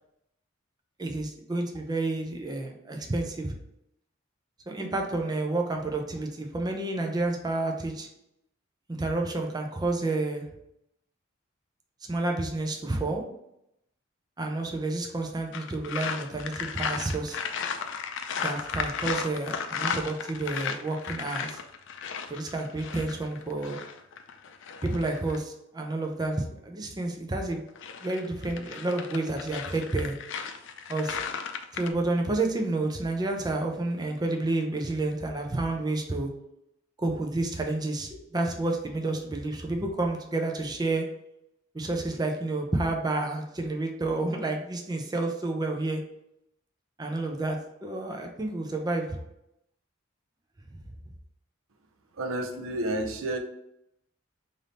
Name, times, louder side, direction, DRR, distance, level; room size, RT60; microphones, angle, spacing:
voice 1, 1.0-3.5 4.7-8.1 9.0-10.5 12.1-13.2 14.4-17.4 18.4-21.6 22.3-23.8 24.8-26.4 26.6-27.6 28.0-30.2 30.9-31.2 31.7-36.3 37.0-41.0 41.7-46.0 47.0-49.2, right 2 dB, 20° right, 2 dB, 0.5 m, -30 dB
sound 1, 15.5-25.4 27.5-31.9, left 6 dB, 65° left, 0.4 m, -35 dB
voice 2, 52.2-53.4, right 1 dB, 85° right, 5 dB, 0.5 m, -30 dB
3.4 x 2.7 x 3.9 m, 0.80 s
head